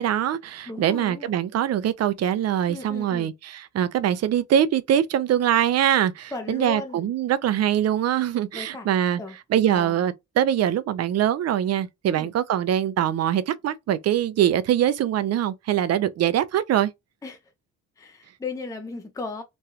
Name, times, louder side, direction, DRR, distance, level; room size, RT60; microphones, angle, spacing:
voice 1, 0.0-9.2 9.5-16.9, right 10 dB, 55° right, 0.5 m, -23 dB
voice 2, 0.7-1.3 2.7-3.3 6.3-7.1 8.5-8.9 9.2-9.4 9.7-10.0 12.1-12.3 17.2-17.4 18.0-19.4, left 3 dB, 10° left, 0.5 m, -36 dB
3.1 x 2.3 x 2.7 m
cardioid pair, 90°, 30 cm